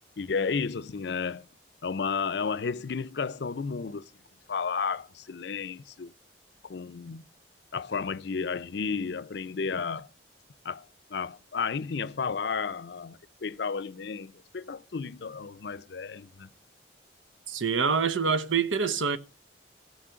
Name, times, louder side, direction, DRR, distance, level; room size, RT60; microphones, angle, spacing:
voice 1, 0.2-1.5 1.8-4.1 4.5-6.1 6.6-7.2 7.7-10.1 10.6-16.5, left 5 dB, 60° left, 0.5 m, -32 dB
voice 2, 17.5-19.2, right 5 dB, 85° right, 0.8 m, -26 dB
15.5 x 6.2 x 5.7 m
head